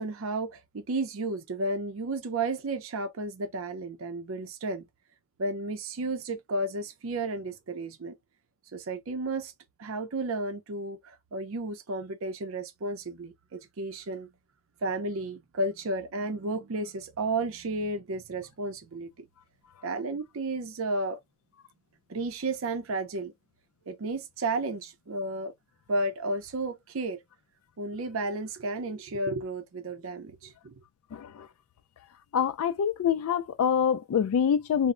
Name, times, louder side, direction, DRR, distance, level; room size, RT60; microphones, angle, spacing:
voice 1, 0.0-4.8 5.4-8.2 8.7-9.5 9.8-14.3 14.8-19.3 19.8-21.2 22.1-23.3 23.9-25.5 25.9-27.2 27.8-30.7, right 2 dB, 75° right, 0.5 m, -32 dB
voice 2, 31.1-31.5 32.3-34.9, left 8 dB, 90° left, 0.3 m, -26 dB
2.1 x 2.0 x 3.6 m
head